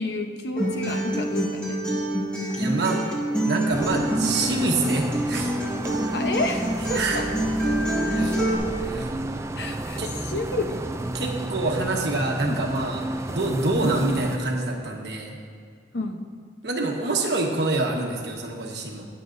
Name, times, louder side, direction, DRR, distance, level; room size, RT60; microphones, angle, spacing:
voice 1, 0.0-2.0 6.1-7.2 9.6-10.0 10.3-10.8 12.5-12.6 13.8-14.0 15.9-16.2, left 2 dB, 70° left, 4 dB, 0.9 m, -30 dB
Acoustic guitar, 0.6-8.6, right 1 dB, 5° left, 2.1 m, -26 dB
voice 2, 2.6-3.0 3.3-5.5 6.9-7.2 8.0-8.3 8.8-9.1 10.0-10.1 11.1-13.0 13.3-15.4 16.6-19.1, right 2 dB, 70° right, 0 dB, 1.3 m, -26 dB
sound 1, 3.7-14.4, right 1 dB, 15° right, 0.3 m, -31 dB
20.5 x 6.9 x 2.6 m, 2.2 s
head